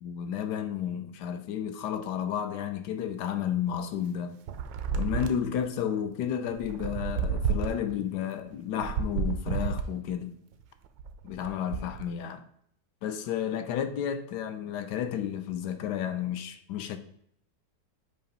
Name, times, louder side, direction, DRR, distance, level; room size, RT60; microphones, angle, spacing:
voice 1, 0.0-4.4 4.9-10.4 11.2-12.4 13.0-17.0, left 9 dB, 75° left, 1.2 m, -32 dB
sound 1, 4.5-5.6 6.5-7.9 8.7-10.1 10.8-12.1, right 6 dB, 90° right, 1.3 m, -31 dB
7.9 x 2.9 x 5.3 m
omnidirectional pair, 1.9 m